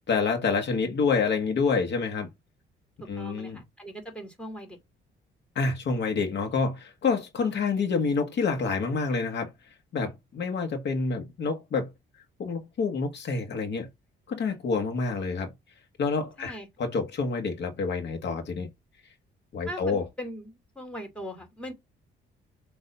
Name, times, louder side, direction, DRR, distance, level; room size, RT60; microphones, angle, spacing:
voice 1, 0.0-2.3 3.1-3.6 5.6-9.5 9.9-11.9 12.4-13.9 14.3-15.5 16.0-18.7 19.5-20.1, left 4 dB, 60° left, 1.8 m, -28 dB
voice 2, 3.2-4.8 16.4-16.7 19.7-21.7, equal, 5° left, 2.9 m, -40 dB
6.8 x 3.3 x 5.6 m
cardioid pair, 90°, 20 cm